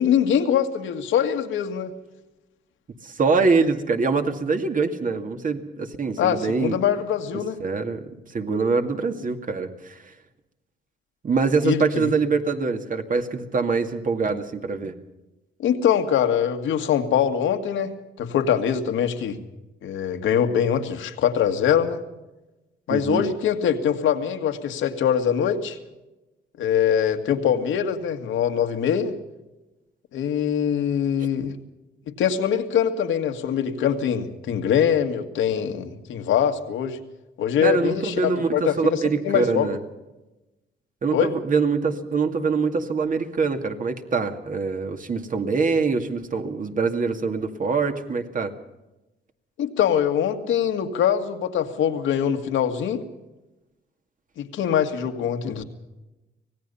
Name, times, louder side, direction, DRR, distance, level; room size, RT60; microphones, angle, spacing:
voice 1, 0.0-1.9 6.2-7.6 11.6-12.1 15.6-17.9 18.2-19.4 19.8-22.0 22.9-25.8 26.6-29.1 30.1-31.5 32.2-37.0 37.4-39.0 39.2-39.7 41.1-41.3 49.6-53.0 54.4-55.6, left 8 dB, 80° left, 6 dB, 2.0 m, -23 dB
voice 2, 3.0-6.8 7.6-8.0 8.3-10.1 11.2-14.9 22.9-23.2 37.6-39.8 41.0-48.5, right 4 dB, 40° right, 6 dB, 2.2 m, -24 dB
25.0 x 18.5 x 5.6 m, 1.0 s
cardioid pair, 90°, 20 cm